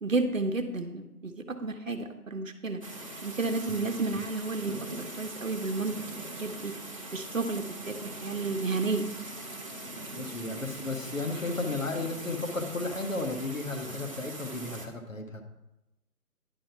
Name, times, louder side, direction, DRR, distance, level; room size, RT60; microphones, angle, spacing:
voice 1, 0.0-2.8 3.2-6.7 7.1-9.1, right 3 dB, 55° right, 6 dB, 1.0 m, -32 dB
sound 1, 2.8-14.9, right 1 dB, 20° right, 0.8 m, -41 dB
voice 2, 10.1-15.4, left 2 dB, 55° left, 4 dB, 1.5 m, -34 dB
10.5 x 5.4 x 5.8 m, 0.96 s
figure-of-eight pair, 165°, 46 cm